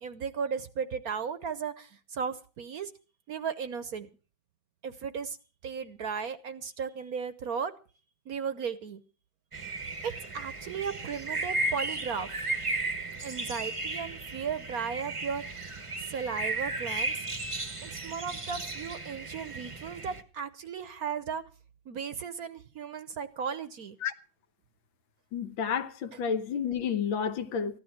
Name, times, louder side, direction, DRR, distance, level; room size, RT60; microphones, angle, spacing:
voice 1, 0.0-2.9 3.3-4.1 4.8-5.4 5.6-7.7 8.3-9.0 10.0-12.3 13.2-15.6 16.1-17.1 17.8-21.4 21.9-24.0, right 6 dB, 60° right, 1.1 m, -35 dB
sound 1, 9.5-20.2, right 2 dB, 25° right, 0.8 m, -35 dB
voice 2, 25.3-27.8, left 7 dB, 75° left, 1.8 m, -30 dB
15.0 x 11.5 x 5.9 m
omnidirectional pair, 2.1 m